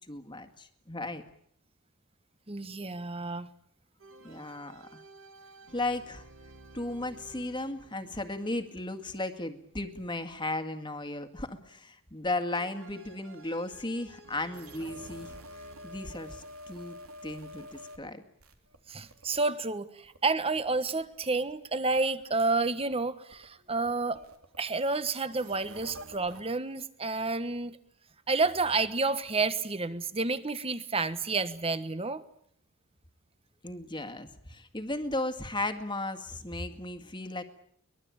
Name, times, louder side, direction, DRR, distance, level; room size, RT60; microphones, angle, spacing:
voice 1, 0.1-1.2 4.2-5.0 5.7-6.3 6.7-15.4 15.8-17.0 17.2-18.2 33.6-37.4, left 2 dB, 20° left, 8 dB, 1.9 m, -35 dB
voice 2, 2.5-3.5 18.9-24.2 24.6-27.8 28.3-32.2, right 3 dB, 25° right, 13 dB, 1.3 m, -30 dB
sound 1, 4.0-10.1 12.5-17.9, right 2 dB, 70° right, 3.0 m, -55 dB
sound 2, 14.5-18.1 18.4-19.4 20.0-23.7 24.1-26.4 28.4-28.8, equal, 90° right, 3.3 m, -49 dB
23.5 x 21.5 x 8.7 m, 0.65 s
head